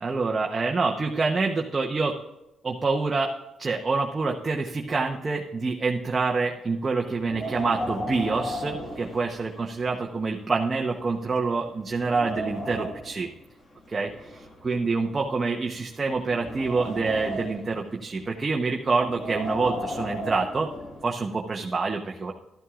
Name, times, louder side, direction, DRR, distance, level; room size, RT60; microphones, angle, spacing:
voice 1, 0.0-2.2 2.6-3.3 3.6-13.3 13.9-20.7 21.0-22.3, right 4 dB, 30° right, 0 dB, 1.0 m, -27 dB
Wind, 7.2-9.8 10.2-10.3 11.0-11.1 11.5-13.2 14.0-15.5 16.1-17.7 19.0-21.1, equal, 35° left, 1.8 m, -35 dB
12.5 x 12.0 x 2.5 m, 0.98 s
cardioid pair, 90°, 0 cm